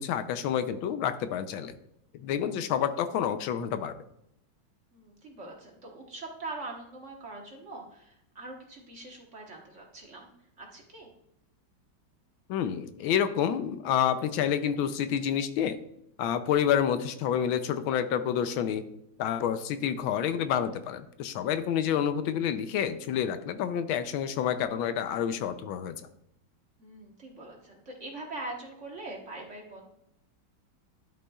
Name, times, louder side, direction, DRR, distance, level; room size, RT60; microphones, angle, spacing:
voice 1, 0.0-1.7 2.1-3.9 12.5-15.8 16.2-18.8 19.2-26.1, left 9 dB, 85° left, 11 dB, 1.4 m, -28 dB
voice 2, 4.9-10.3 10.6-11.1 26.8-29.9, right 2 dB, 40° right, 0 dB, 1.4 m, -43 dB
11.5 x 8.2 x 2.3 m, 0.78 s
omnidirectional pair, 2.2 m